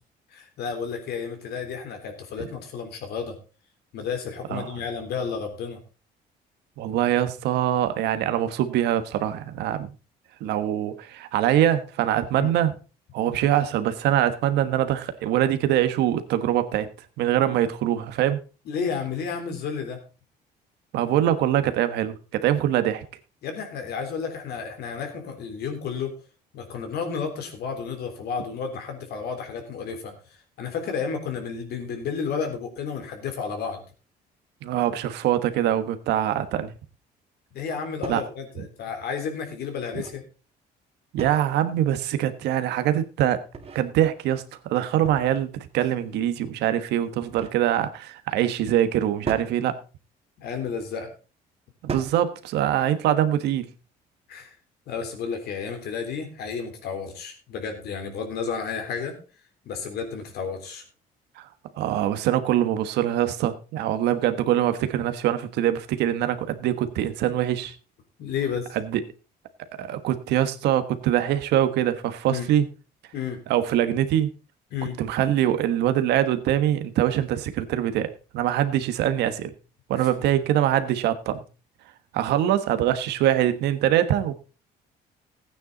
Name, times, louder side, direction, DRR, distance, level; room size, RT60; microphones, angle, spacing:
voice 1, 0.3-3.4 3.9-5.8 12.4-12.5 18.7-20.0 23.4-26.1 26.5-30.2 30.6-33.8 37.5-40.2 50.4-51.1 54.3-54.6 54.9-59.1 59.7-60.8 68.2-68.7 72.3-72.5 73.1-73.4 74.7-75.0 80.0-80.1, left 6 dB, 70° left, 5 dB, 3.5 m, -32 dB
voice 2, 6.8-9.9 10.4-12.7 13.1-16.9 17.2-18.4 20.9-23.0 34.6-36.7 38.1-38.2 41.1-43.4 43.7-49.8 51.9-53.7 61.4-61.5 61.8-67.7 68.7-69.0 69.8-72.7 73.5-74.3 75.0-79.5 79.9-81.4 82.1-84.3, right 11 dB, 80° right, 11 dB, 1.3 m, -23 dB
sound 1, 37.6-37.7 38.0-38.3 39.7-40.3 41.2-41.6 43.3-43.8 45.0-45.5 47.0-47.6 49.2-49.5 50.6-50.9 51.9-52.3, right 5 dB, 35° right, 2.2 m, -36 dB
14.5 x 9.3 x 3.9 m, 0.33 s
cardioid pair, 110°, 17 cm